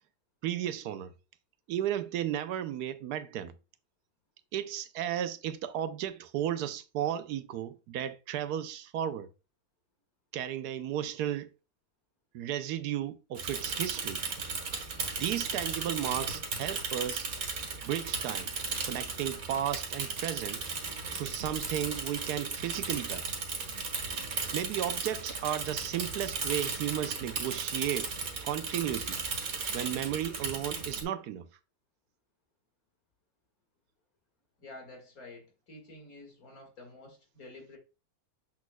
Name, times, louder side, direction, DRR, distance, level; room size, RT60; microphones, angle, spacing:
voice 1, 0.4-1.1 1.7-3.5 4.5-9.3 10.3-11.5 12.3-14.2 15.2-17.3 17.8-18.5 18.9-20.6 21.1-23.3 24.5-28.1 28.4-29.2 29.7-31.5, right 11 dB, 85° right, 1.2 m, -34 dB
Bicycle / Mechanisms, 13.3-31.0, right 4 dB, 65° right, 1.8 m, -36 dB
voice 2, 34.6-37.8, left 2 dB, 65° left, 2.4 m, -49 dB
7.1 x 6.2 x 2.2 m
omnidirectional pair, 1.6 m